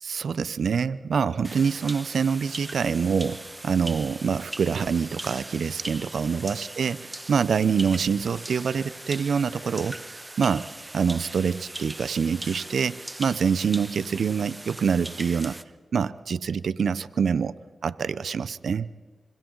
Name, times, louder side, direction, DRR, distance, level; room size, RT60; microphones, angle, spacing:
voice 1, 0.0-10.7 10.9-15.6 15.9-17.5 17.8-18.9, right 6 dB, 80° right, 16 dB, 0.6 m, -25 dB
sound 1, 1.4-15.6, right 1 dB, 25° right, 1.3 m, -40 dB
27.5 x 26.0 x 3.9 m, 1.5 s
cardioid pair, 40°, 0 cm